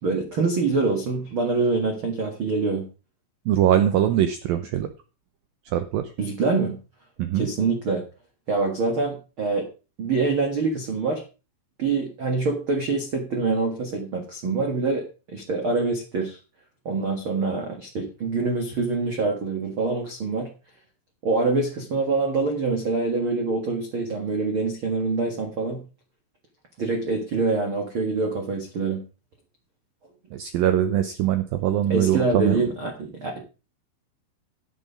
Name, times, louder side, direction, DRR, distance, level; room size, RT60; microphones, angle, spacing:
voice 1, 0.0-2.9 6.2-6.8 7.3-8.0 8.5-9.7 10.0-11.2 11.8-16.4 16.8-20.5 21.2-25.8 26.8-29.0 31.9-33.4, right 3 dB, 60° right, 3 dB, 1.4 m, -25 dB
voice 2, 3.5-4.9 5.7-6.1 7.2-7.5 30.3-32.6, right 11 dB, 80° right, 9 dB, 2.1 m, -22 dB
9.5 x 9.0 x 5.0 m, 0.33 s
omnidirectional pair, 5.0 m